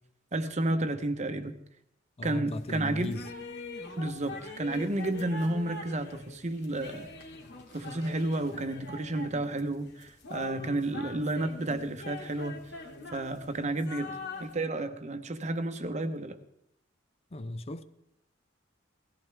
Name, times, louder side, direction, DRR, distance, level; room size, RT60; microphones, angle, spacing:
voice 1, 0.3-1.5 2.2-3.1 4.0-7.1 7.7-12.6 13.1-16.4, right 2 dB, 35° right, 0.9 m, -31 dB
voice 2, 2.2-3.3 17.3-17.8, left 1 dB, 30° left, 0.6 m, -36 dB
sound 1, 2.5-14.5, left 3 dB, 65° left, 2.2 m, -44 dB
17.5 x 14.0 x 3.4 m
head